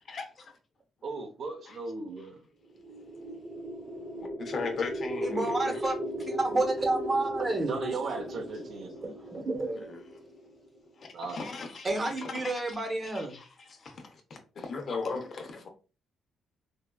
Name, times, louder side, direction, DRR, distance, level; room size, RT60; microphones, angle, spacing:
voice 1, 0.1-0.5 1.7-1.8 4.4-5.8 9.9-10.0 11.0-11.9 12.2-12.5 13.3-14.0 14.3-15.7, left 4 dB, 50° left, 0.7 m, -37 dB
voice 2, 1.0-2.4 7.4-8.9 11.1-11.4, right 4 dB, 60° right, 0.7 m, -36 dB
sound 1, 2.7-10.8, equal, 5° right, 0.9 m, -37 dB
voice 3, 5.2-6.0 6.3-7.9 9.0-9.9 11.8-13.4, right 2 dB, 30° right, 0.9 m, -30 dB
3.4 x 2.3 x 2.2 m
cardioid pair, 90°, 0 cm